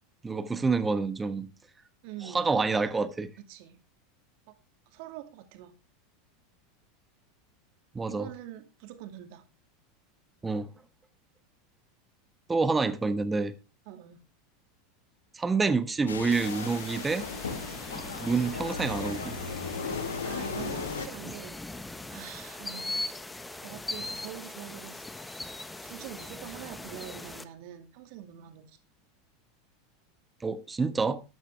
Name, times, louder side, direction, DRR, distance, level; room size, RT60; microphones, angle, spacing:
voice 1, 0.2-1.5 2.2-3.3 7.9-8.3 10.4-10.7 12.5-13.5 15.3-17.3 18.2-19.4 30.4-31.2, right 4 dB, 15° right, 1.2 m, -27 dB
voice 2, 2.0-2.5 3.5-3.8 4.9-5.8 8.1-9.4 13.9-14.2 20.2-21.6 22.1-23.0 23.6-25.0 25.8-28.8, right 12 dB, 55° right, 2.3 m, -44 dB
sound 1, 16.1-21.1, left 5 dB, 80° left, 1.5 m, -36 dB
sound 2, 16.3-27.4, left 2 dB, 10° left, 1.2 m, -40 dB
13.0 x 11.0 x 3.4 m
figure-of-eight pair, 85°, 0 cm